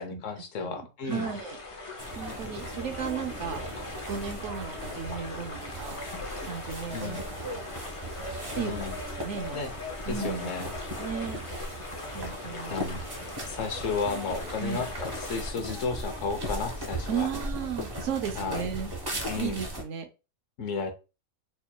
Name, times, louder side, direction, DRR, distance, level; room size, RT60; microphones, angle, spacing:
voice 1, 0.0-1.3 6.9-7.2 8.5-9.0 9.5-9.7 10.1-10.7 12.7-13.0 13.5-17.3 18.4-18.6 19.3-19.6 20.6-20.9, left 5 dB, 70° left, 6 dB, 1.1 m, -33 dB
voice 2, 0.6-1.6 2.1-3.6 4.1-6.0 6.4-7.6 8.5-8.7 9.2-9.6 10.1-10.5 11.0-11.4 12.1-12.7 14.6-14.8 17.1-20.1, right 7 dB, 65° right, 6 dB, 0.9 m, -35 dB
sound 1, 1.1-15.5, left 2 dB, 40° left, 0.4 m, -41 dB
sound 2, 2.0-19.8, equal, 25° right, 0.6 m, -38 dB
4.3 x 3.0 x 2.2 m, 0.30 s
omnidirectional pair, 1.4 m